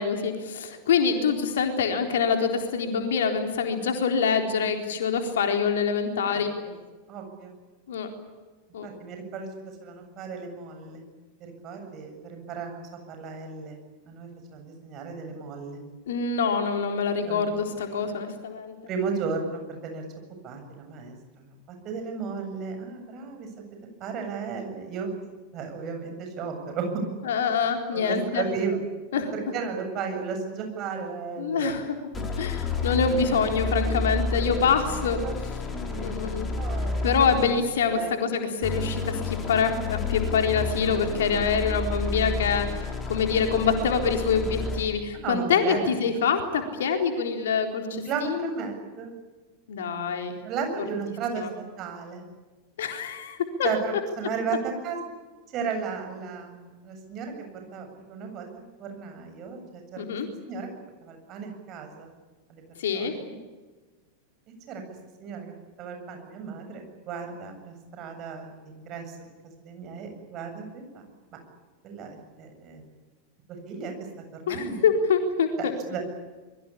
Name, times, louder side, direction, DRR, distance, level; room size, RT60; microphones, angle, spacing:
voice 1, 0.0-6.5 7.9-8.1 8.7-8.9 16.1-18.7 27.2-28.4 29.1-29.3 31.4-31.9 32.4-35.2 36.0-36.5 37.0-48.5 49.7-50.3 51.4-51.5 52.8-53.7 60.0-60.3 62.8-63.1 74.5-75.7, left 6 dB, 60° left, 5 dB, 4.0 m, -25 dB
voice 2, 7.1-7.6 8.8-9.5 9.8-11.0 11.4-13.8 14.1-15.8 17.2-17.4 18.9-20.0 20.4-21.1 21.7-23.5 24.0-25.1 25.5-26.9 27.9-28.8 29.3-31.7 35.2-35.3 35.7-37.2 37.9-38.1 45.1-45.9 47.9-49.1 50.4-51.4 51.8-52.2 53.6-55.0 55.5-59.8 60.5-60.7 61.0-62.1 62.5-62.6 62.9-63.1 64.7-64.8 65.2-69.1 69.6-71.0 71.8-72.8 73.7-73.9 74.4-74.9 75.9-76.0, right 5 dB, 35° right, 5 dB, 7.8 m, -34 dB
sound 1, 32.1-37.7 38.6-45.0, left 3 dB, 20° left, 4.5 m, -30 dB
26.5 x 22.5 x 8.6 m, 1.3 s
figure-of-eight pair, 90°, 0 cm